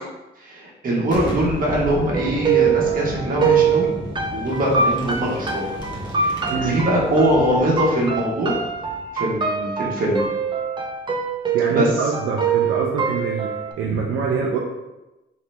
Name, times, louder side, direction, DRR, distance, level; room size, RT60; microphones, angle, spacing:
voice 1, 0.4-3.9 4.3-5.7 6.1-8.6 9.1-10.2 11.7-11.9, right 1 dB, 45° right, -4 dB, 1.2 m, -22 dB
Boom, 1.0-10.6, left 1 dB, 20° left, 1.0 m, -34 dB
sound 1, 2.1-13.7, right 6 dB, 25° right, 0.5 m, -23 dB
voice 2, 6.5-6.8 11.5-14.6, right 5 dB, 75° right, -2 dB, 0.5 m, -25 dB
3.2 x 2.8 x 3.3 m, 1.0 s
cardioid pair, 90°, 20 cm